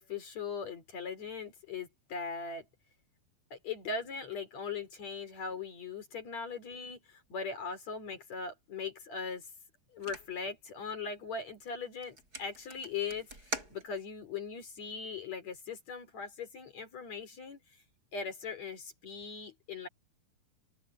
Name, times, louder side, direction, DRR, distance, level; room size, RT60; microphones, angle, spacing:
voice 1, 0.0-2.7 3.5-9.4 9.9-17.6 18.1-19.9, left 5 dB, 45° left, 4.4 m, -40 dB
sound 1, 10.0-10.5 11.1-11.4 11.7-11.8 12.0-14.3, right 3 dB, 20° right, 8.3 m, -43 dB
open air
omnidirectional pair, 4.5 m